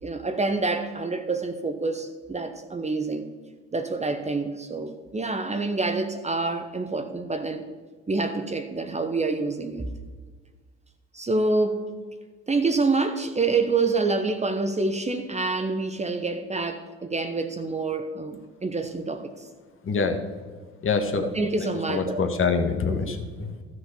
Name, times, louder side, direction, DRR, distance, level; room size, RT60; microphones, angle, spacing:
voice 1, 0.0-3.3 3.7-7.6 8.1-9.8 11.1-11.8 12.5-19.3 21.4-22.2 23.1-23.2, right 3 dB, 20° right, 7 dB, 1.1 m, -27 dB
voice 2, 19.8-20.2 20.8-21.3 21.6-23.6, left 5 dB, 40° left, 5 dB, 1.6 m, -26 dB
12.5 x 6.3 x 6.9 m, 1.5 s
hypercardioid pair, 65°, 32 cm